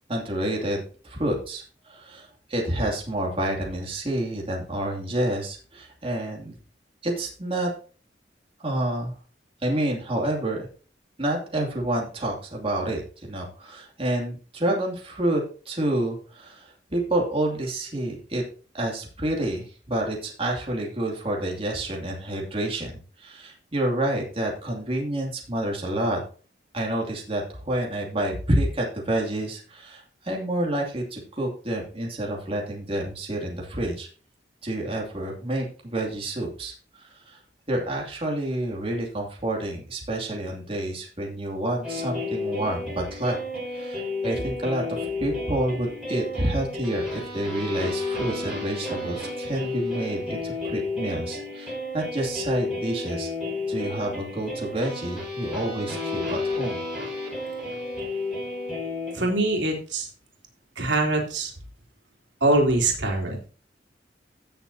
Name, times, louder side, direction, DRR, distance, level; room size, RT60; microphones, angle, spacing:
voice 1, 0.1-6.6 7.0-7.7 8.6-9.1 9.6-10.7 11.2-18.4 18.7-26.2 26.7-34.1 34.6-37.4 37.7-43.4 43.7-53.3 53.7-56.8, right 1 dB, 30° right, -1 dB, 2.6 m, -28 dB
sound 1, 41.8-59.6, left 2 dB, 5° right, 5.0 m, -32 dB
voice 2, 59.1-60.1 60.7-61.5 62.4-63.5, right 2 dB, 80° right, 1 dB, 3.3 m, -23 dB
16.0 x 6.9 x 2.8 m, 0.38 s
head